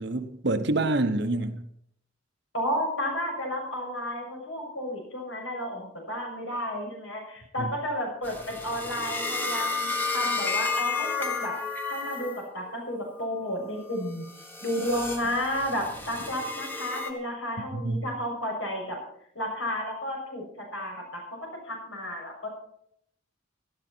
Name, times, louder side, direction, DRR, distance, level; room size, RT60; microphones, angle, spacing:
voice 1, 0.0-1.7 7.6-7.7 17.7-18.0, right 2 dB, 55° right, 9 dB, 1.1 m, -27 dB
voice 2, 2.5-11.5 11.9-14.2 14.6-19.0 19.3-21.4 21.6-22.5, equal, 70° left, 1 dB, 6.8 m, -32 dB
sound 1, 8.2-12.5 12.9-13.3 13.9-17.1, left 4 dB, 10° left, 1.5 m, -32 dB
18.0 x 13.0 x 4.5 m, 0.71 s
head